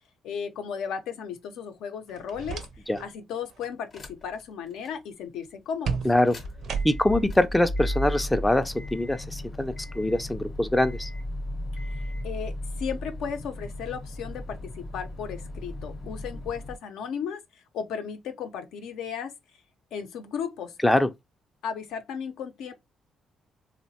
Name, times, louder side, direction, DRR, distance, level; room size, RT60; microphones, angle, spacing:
voice 1, 0.2-2.6 3.0-6.0 11.9-17.4 17.7-19.3 19.9-20.7 21.6-22.7, left 7 dB, 85° left, 0.5 m, -35 dB
sound 1, 2.1-3.1 3.4-3.8 5.8-7.3, right 5 dB, 65° right, 0.5 m, -33 dB
sound 2, 3.9-4.4 4.8-4.9 6.1-16.8, left 1 dB, 45° left, 0.7 m, -35 dB
voice 2, 6.0-6.4 6.8-11.1 20.8-21.1, left 1 dB, 10° left, 0.3 m, -23 dB
3.0 x 2.1 x 2.7 m
cardioid pair, 90°, 0 cm